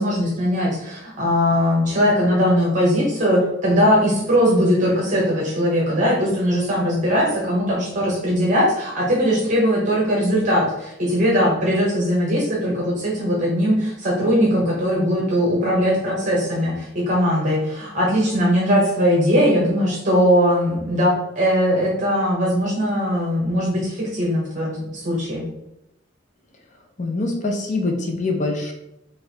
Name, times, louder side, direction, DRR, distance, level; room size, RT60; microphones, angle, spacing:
voice 1, 0.0-25.4, equal, 40° right, -4 dB, 0.8 m, -20 dB
voice 2, 27.0-28.7, left 2 dB, 40° left, 2 dB, 0.7 m, -24 dB
4.4 x 2.5 x 3.3 m, 0.87 s
head